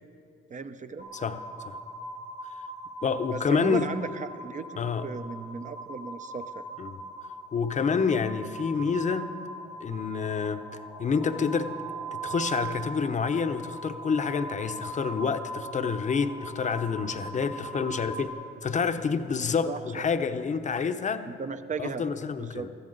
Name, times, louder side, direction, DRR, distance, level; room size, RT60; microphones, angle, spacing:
voice 1, 0.5-1.1 3.3-6.7 19.7-20.0 21.3-22.1 22.4-22.7, right 5 dB, 40° right, 10 dB, 0.8 m, -36 dB
sound 1, 1.0-18.3, right 2 dB, 65° right, 2.9 m, -40 dB
voice 2, 3.0-3.9 4.8-5.1 6.8-7.0 7.5-9.3 9.8-10.7 11.0-11.8 12.1-18.3 18.6-21.3 21.8-22.7, left 5 dB, 40° left, 9 dB, 0.8 m, -28 dB
20.5 x 14.5 x 4.0 m, 2.5 s
cardioid pair, 90°, 20 cm